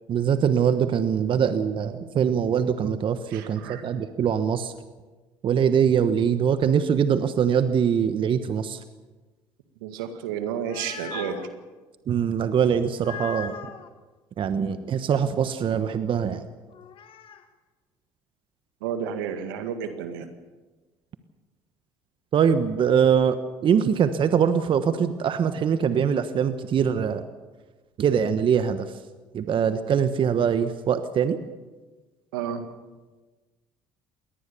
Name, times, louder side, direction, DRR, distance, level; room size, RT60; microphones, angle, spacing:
voice 1, 0.1-4.7 5.4-8.8 12.1-13.6 14.4-16.4 22.3-27.3 28.0-28.9 29.3-31.4, right 7 dB, 50° right, 10 dB, 1.2 m, -23 dB
voice 2, 3.3-3.8 9.8-11.5 18.8-20.3 32.3-32.6, right 8 dB, 85° right, 8 dB, 2.0 m, -31 dB
sound 1, 10.4-11.5 12.9-13.9 16.7-17.4, left 8 dB, 50° left, 1.8 m, -39 dB
22.0 x 18.0 x 7.0 m, 1.3 s
hypercardioid pair, 70°, 11 cm